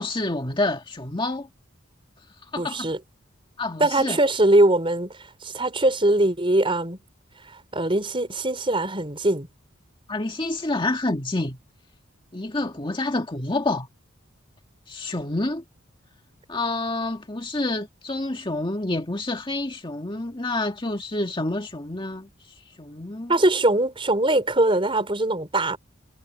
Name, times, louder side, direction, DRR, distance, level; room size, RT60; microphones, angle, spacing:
voice 1, 0.0-1.5 2.4-2.9 3.6-4.2 10.1-11.6 12.3-13.9 14.9-15.6 16.5-23.3, left 2 dB, 25° left, 1.9 m, -28 dB
voice 2, 2.6-3.0 3.8-5.1 5.4-7.0 7.7-9.5 23.3-25.8, right 1 dB, 25° right, 4.6 m, -21 dB
head